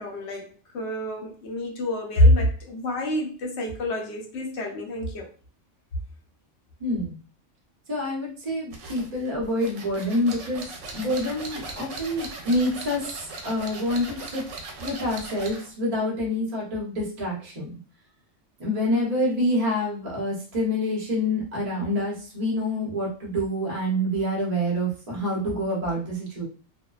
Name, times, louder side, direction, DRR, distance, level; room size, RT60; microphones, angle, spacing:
voice 1, 0.0-5.3, left 1 dB, 70° left, 0 dB, 0.9 m, -25 dB
voice 2, 6.8-7.2 7.9-14.4 14.7-17.7 18.6-26.5, left 1 dB, 35° right, -4 dB, 0.8 m, -27 dB
sound 1, 8.7-15.7, right 3 dB, 75° right, 0.9 m, -39 dB
2.6 x 2.1 x 2.3 m, 0.39 s
omnidirectional pair, 1.3 m